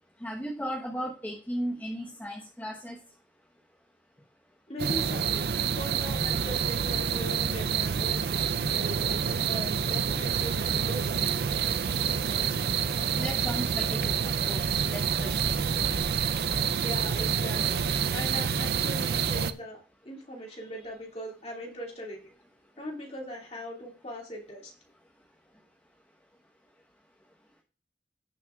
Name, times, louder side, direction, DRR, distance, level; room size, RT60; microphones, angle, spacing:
voice 1, 0.2-3.0 13.2-15.6, equal, 10° left, -2 dB, 1.1 m, -36 dB
voice 2, 4.7-9.0 9.5-11.2 16.8-17.8 18.1-19.8 20.0-22.3 22.8-24.7, equal, 35° left, 0 dB, 2.3 m, -40 dB
sound 1, 4.8-19.5, right 7 dB, 60° right, 0.5 m, -28 dB
18.0 x 5.9 x 2.4 m, 0.37 s
head